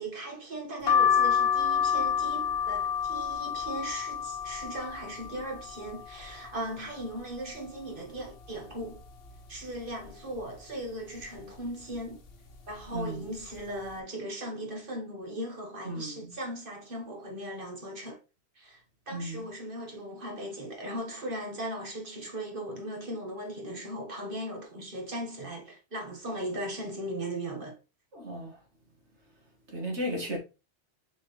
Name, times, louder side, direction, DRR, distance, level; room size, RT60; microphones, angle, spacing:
voice 1, 0.0-9.0 9.5-12.2 12.7-18.2 18.6-27.8, right 1 dB, 50° right, 2.0 m, -38 dB
sound 1, 0.9-6.5 7.0-7.8 8.2-8.3 8.4-9.6 10.0-10.4 11.2-11.5 12.3-12.5 12.8-13.0, left 7 dB, 60° left, 1.0 m, -29 dB
voice 2, 12.9-13.3 15.8-16.3 19.1-19.4 28.1-28.6 29.7-30.4, equal, 80° right, 2.1 m, -35 dB
6.5 x 4.3 x 3.3 m
omnidirectional pair, 1.1 m